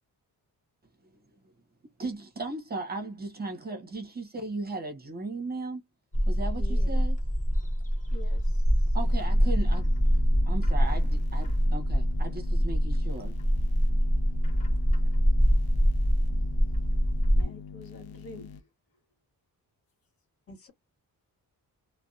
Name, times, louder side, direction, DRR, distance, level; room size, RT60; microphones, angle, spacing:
voice 1, 2.0-5.8 6.3-7.2 8.9-9.9 10.4-13.4, right 3 dB, 25° right, 0.7 m, -36 dB
Bird, 6.1-17.4, equal, 20° left, 0.6 m, -24 dB
voice 2, 6.6-7.0 20.5-20.7, equal, 40° left, 1.1 m, -46 dB
voice 3, 8.1-9.0 17.3-18.7, left 3 dB, 70° left, 1.0 m, -47 dB
sound 1, 9.0-18.6, left 6 dB, 85° left, 0.6 m, -45 dB
2.5 x 2.1 x 2.3 m
wide cardioid pair, 175°, 37 cm